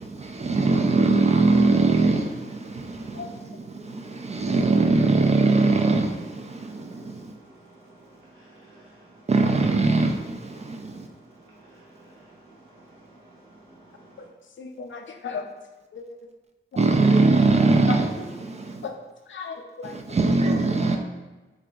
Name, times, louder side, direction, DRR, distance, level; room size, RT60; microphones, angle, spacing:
voice 1, 0.0-7.3 9.3-11.1 16.8-18.1 18.4-18.9 19.8-21.0, right 3 dB, 35° right, 0.3 m, -22 dB
voice 2, 6.6-9.3 10.9-14.3, right 2 dB, 80° right, 1.4 m, -52 dB
voice 3, 14.6-15.4 15.9-16.0 17.9-18.0 18.8-18.9 19.3-20.0, left 6 dB, 70° left, 0.5 m, -34 dB
5.8 x 2.6 x 2.4 m
wide cardioid pair, 90°, 20 cm